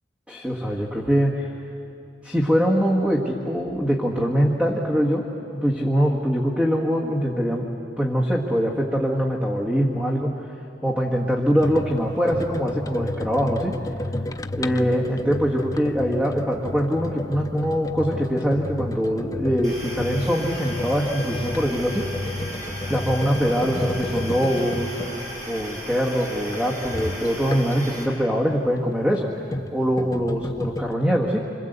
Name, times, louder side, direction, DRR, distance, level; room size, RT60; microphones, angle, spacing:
voice 1, 0.3-1.5 2.2-5.3 5.5-7.7 8.0-10.4 10.8-13.7 14.5-22.1 22.9-25.0 25.5-29.3 29.7-31.5, equal, 5° right, -2 dB, 1.8 m, -23 dB
sound 1, 11.6-28.0 29.0-30.9, left 1 dB, 20° left, 0.5 m, -32 dB
sound 2, 19.6-28.0, equal, 40° right, 7.7 m, -36 dB
28.0 x 26.0 x 8.1 m, 2.8 s
head